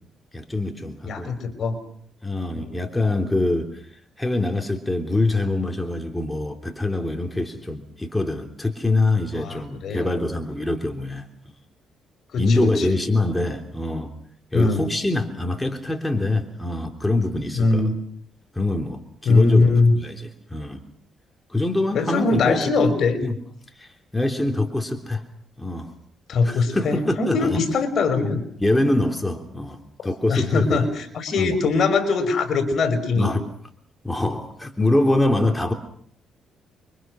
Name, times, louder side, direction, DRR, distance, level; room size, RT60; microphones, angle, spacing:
voice 1, 0.3-1.3 2.2-3.8 4.2-11.5 12.4-14.1 14.5-17.9 18.5-20.8 21.5-22.9 23.2-23.3 23.8-25.2 25.6-25.9 26.4-27.6 28.2-28.3 28.6-30.8 31.4-31.5 33.1-33.4 34.0-35.7, left 2 dB, 10° left, 4 dB, 3.4 m, -24 dB
voice 2, 1.1-1.8 2.5-2.7 9.3-10.1 12.3-13.0 14.5-14.8 17.5-18.0 19.3-20.0 21.9-23.2 26.3-28.4 30.3-33.3, left 3 dB, 60° left, 8 dB, 5.7 m, -21 dB
29.5 x 24.5 x 6.4 m, 0.62 s
cardioid pair, 90°, 0 cm